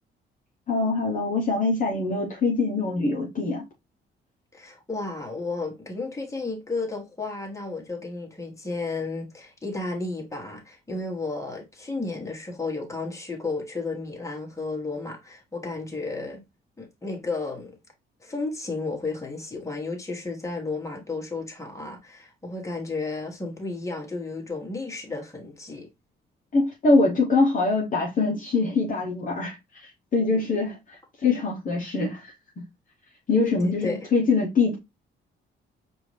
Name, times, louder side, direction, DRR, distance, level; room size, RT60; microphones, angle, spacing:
voice 1, 0.7-3.6 26.5-32.6 33.3-34.8, left 3 dB, 40° left, 1.0 m, -24 dB
voice 2, 4.5-16.4 16.8-17.8 18.2-25.9 33.4-34.0, left 3 dB, 15° left, 1.5 m, -33 dB
4.8 x 2.7 x 3.2 m
cardioid pair, 90°, 20 cm